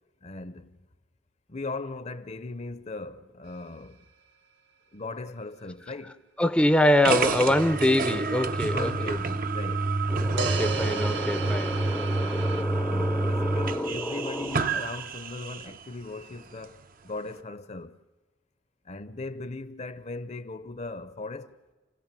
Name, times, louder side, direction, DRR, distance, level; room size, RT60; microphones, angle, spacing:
voice 1, 0.2-0.8 1.5-4.0 4.9-6.2 8.6-10.0 12.8-18.0 18.9-21.5, left 3 dB, 35° left, 0.8 m, -38 dB
sound 1, 3.5-3.6 10.4-12.6, right 5 dB, 70° right, 1.4 m, -34 dB
voice 2, 6.4-9.2 10.1-14.7, left 1 dB, 5° left, 0.6 m, -25 dB
sound 2, 7.0-15.8, right 3 dB, 50° right, 0.7 m, -29 dB
29.5 x 16.0 x 7.5 m
head